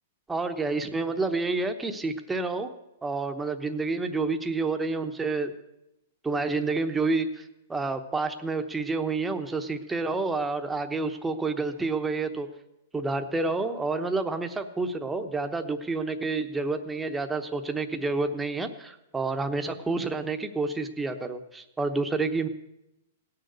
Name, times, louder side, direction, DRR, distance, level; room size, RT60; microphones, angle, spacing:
voice 1, 0.3-2.7 3.0-5.5 6.2-12.5 12.9-22.5, right 3 dB, 10° right, 7 dB, 0.9 m, -29 dB
17.0 x 6.6 x 8.0 m, 0.89 s
hypercardioid pair, 135°, 0 cm